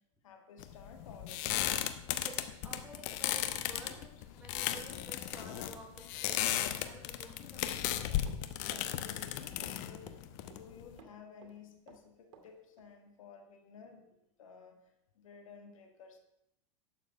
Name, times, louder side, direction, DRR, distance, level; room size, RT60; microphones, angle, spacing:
voice 1, 0.0-1.6 3.9-4.0 8.6-16.2, left 6 dB, 75° left, 4 dB, 1.9 m, -55 dB
sound 1, 0.6-11.0, left 12 dB, 55° left, 1.0 m, -36 dB
voice 2, 2.6-4.1 4.3-8.0, right 2 dB, 5° right, -2 dB, 4.0 m, -52 dB
Run, 8.3-8.9 9.2-10.7 11.0-12.5 12.8-12.9, right 6 dB, 60° right, 2.2 m, -56 dB
11.5 x 7.4 x 5.6 m, 0.79 s
hypercardioid pair, 100°, 17 cm